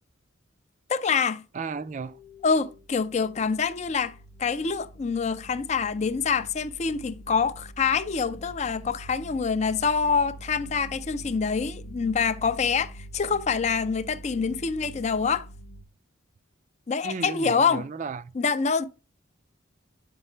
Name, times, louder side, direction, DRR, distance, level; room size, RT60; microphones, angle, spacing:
voice 1, 0.9-1.4 2.4-15.5 16.9-17.9 18.3-18.9, left 5 dB, 35° left, 0.4 m, -26 dB
voice 2, 1.5-2.2 17.0-18.3, right 4 dB, 40° right, 0.3 m, -34 dB
sound 1, 1.7-15.8, right 1 dB, 70° left, 0.8 m, -45 dB
7.1 x 5.4 x 3.3 m
head